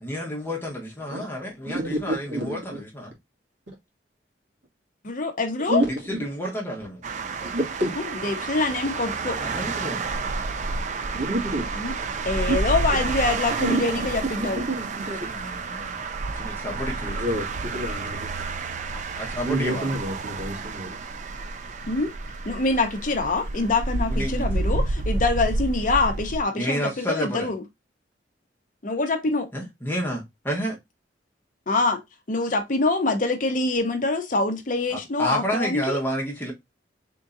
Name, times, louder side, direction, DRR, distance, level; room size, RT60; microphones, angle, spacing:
voice 1, 0.0-3.1 5.9-7.0 9.4-10.1 15.2-16.0 16.3-17.2 18.9-19.9 24.1-24.6 26.5-27.5 29.5-30.8 34.9-36.5, equal, 10° left, 1.3 m, -30 dB
voice 2, 1.7-2.8 5.7-6.2 7.4-7.9 11.1-11.7 13.6-14.1 14.4-15.2 17.1-18.3 19.4-21.0, right 1 dB, 75° right, 2.0 m, -28 dB
voice 3, 5.0-5.8 8.2-9.4 11.8-11.9 12.3-14.6 21.9-22.1 22.5-27.6 28.8-29.5 31.7-32.0 32.3-36.0, left 3 dB, 45° left, 0.8 m, -25 dB
sound 1, 7.0-26.4, right 3 dB, 40° right, 0.4 m, -30 dB
3.8 x 3.7 x 2.5 m
head